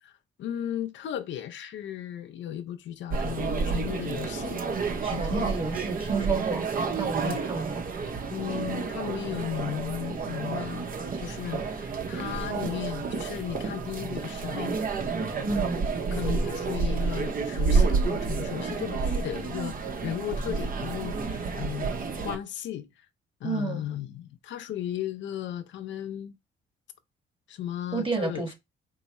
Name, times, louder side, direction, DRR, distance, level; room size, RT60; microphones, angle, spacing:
voice 1, 0.0-4.6 5.1-5.6 7.2-7.4 8.3-10.9 11.2-14.8 16.1-21.9 22.2-23.1 23.4-26.4 27.5-28.5, left 11 dB, 70° left, 0.5 m, -35 dB
sound 1, 3.1-22.4, right 4 dB, 45° right, 0.8 m, -30 dB
voice 2, 5.0-6.6 7.0-7.8 15.4-15.9 23.4-23.8 27.9-28.5, right 4 dB, 25° right, 1.5 m, -30 dB
4.5 x 2.0 x 4.0 m
cardioid pair, 90°, 20 cm